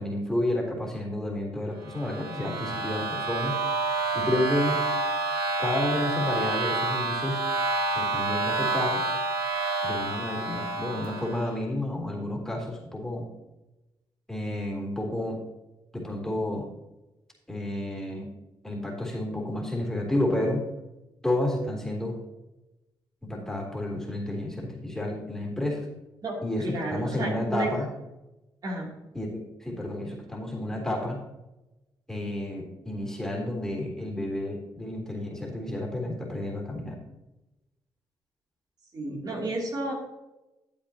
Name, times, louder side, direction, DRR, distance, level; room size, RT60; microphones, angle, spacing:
voice 1, 0.0-3.5 4.1-4.8 5.6-7.4 7.9-9.0 9.8-13.3 14.3-15.4 15.9-16.7 17.5-18.3 18.6-20.6 21.2-22.2 23.2-25.9 26.4-27.9 29.1-31.2 32.1-37.0, left 1 dB, 5° left, -1 dB, 3.5 m, -30 dB
sound 1, 1.8-11.5, right 3 dB, 90° right, 2.8 m, -29 dB
voice 2, 26.2-27.7 28.6-28.9 38.9-39.9, right 2 dB, 50° right, -2 dB, 2.9 m, -32 dB
12.5 x 8.4 x 2.9 m, 0.99 s
cardioid pair, 90°, 9 cm